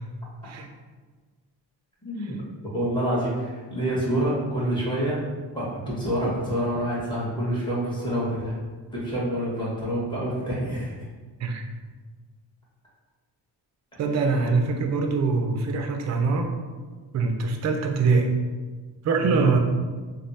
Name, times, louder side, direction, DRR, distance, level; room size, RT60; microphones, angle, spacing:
voice 1, 2.0-2.3 2.7-5.2 5.5-8.5 8.9-10.9 14.4-14.5 19.2-19.5, equal, 10° left, -8 dB, 1.3 m, -27 dB
voice 2, 14.0-16.5 17.1-18.3 19.0-19.6, right 4 dB, 40° right, 4 dB, 0.4 m, -23 dB
3.1 x 2.1 x 2.6 m, 1.4 s
cardioid pair, 65°, 46 cm